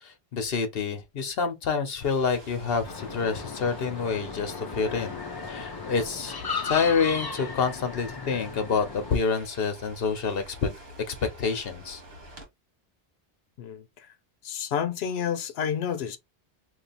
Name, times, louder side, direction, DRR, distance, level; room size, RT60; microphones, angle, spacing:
voice 1, 0.0-5.2 5.5-6.4 6.6-10.7 11.1-12.0, left 5 dB, 65° left, 1.1 m, -27 dB
sound 1, 2.0-12.5, right 1 dB, 75° right, 1.6 m, -47 dB
sound 2, 2.8-9.2, left 5 dB, 40° left, 0.3 m, -36 dB
voice 2, 13.6-14.1 14.4-16.2, left 8 dB, 85° left, 0.9 m, -30 dB
3.1 x 2.7 x 4.2 m
omnidirectional pair, 1.1 m